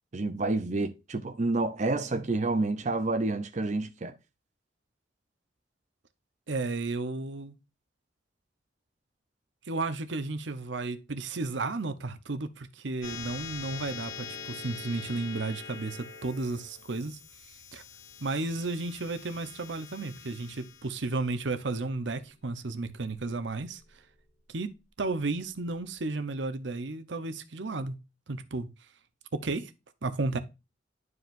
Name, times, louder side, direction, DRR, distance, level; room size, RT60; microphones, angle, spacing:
voice 1, 0.1-4.1, right 2 dB, 40° right, 0.6 m, -29 dB
voice 2, 6.5-7.5 9.7-17.2 17.7-17.8 18.2-23.8 24.5-28.0 28.3-28.7 29.3-29.7 30.0-30.4, right 3 dB, 70° right, 0.9 m, -33 dB
sound 1, 13.0-23.9, left 6 dB, 85° left, 2.7 m, -45 dB
11.0 x 4.8 x 2.6 m
head